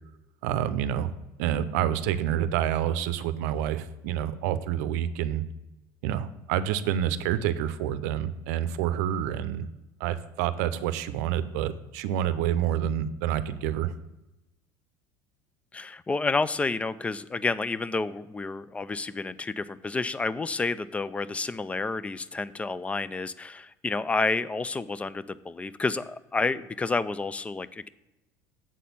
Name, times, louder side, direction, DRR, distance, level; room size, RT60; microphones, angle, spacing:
voice 1, 0.4-1.1 1.4-5.4 6.0-9.7 10.0-13.9, right 10 dB, 80° right, 13 dB, 0.6 m, -28 dB
voice 2, 15.7-27.9, left 3 dB, 15° left, 17 dB, 0.3 m, -30 dB
7.4 x 4.2 x 6.8 m, 0.99 s
supercardioid pair, 105°, 9 cm